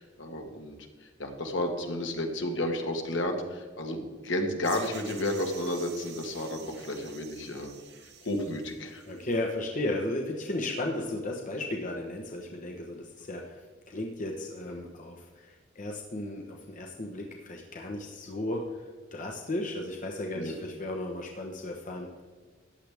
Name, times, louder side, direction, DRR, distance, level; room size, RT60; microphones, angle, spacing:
voice 1, 0.0-7.7 8.2-9.0 20.3-20.6, left 1 dB, 65° left, 4 dB, 1.6 m, -32 dB
sound 1, 4.6-9.4, right 7 dB, 60° right, 1.4 m, -48 dB
voice 2, 9.1-22.2, left 1 dB, 40° left, 1 dB, 1.1 m, -35 dB
14.0 x 10.0 x 3.5 m, 1.5 s
head